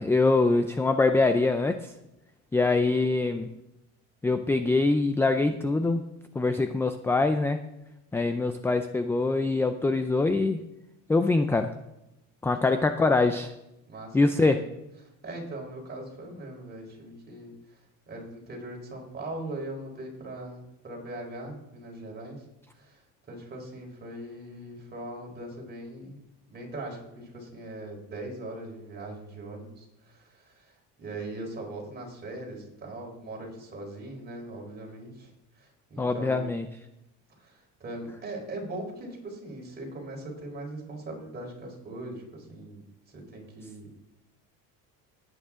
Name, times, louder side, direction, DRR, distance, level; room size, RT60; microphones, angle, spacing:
voice 1, 0.0-1.9 2.5-3.5 4.2-6.1 6.4-7.6 8.1-10.6 11.1-11.7 12.4-13.5 14.1-14.6 36.0-36.6, left 3 dB, 5° left, 8 dB, 0.4 m, -24 dB
voice 2, 13.9-14.6 15.2-17.8 18.1-22.4 22.7-23.0 23.3-26.2 26.5-30.7 31.0-35.3 35.6-36.6 37.4-42.8 43.1-43.9, right 1 dB, 30° right, 0 dB, 4.3 m, -40 dB
19.5 x 9.3 x 3.7 m, 0.91 s
cardioid pair, 150°, 35 cm